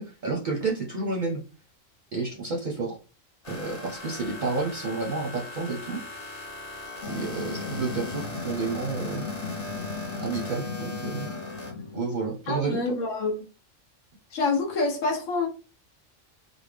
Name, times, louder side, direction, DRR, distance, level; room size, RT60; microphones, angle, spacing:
voice 1, 0.0-1.4 2.1-3.0 3.5-6.0 7.1-9.3 10.2-11.3 11.9-13.0, right 4 dB, 50° right, 0.6 m, -30 dB
sound 1, 3.4-11.7, left 1 dB, 30° left, 0.9 m, -39 dB
sound 2, 7.0-12.1, left 5 dB, 45° left, 0.5 m, -36 dB
voice 2, 12.5-13.4 14.3-15.5, left 3 dB, 80° left, 1.1 m, -26 dB
3.5 x 2.0 x 3.3 m
omnidirectional pair, 1.3 m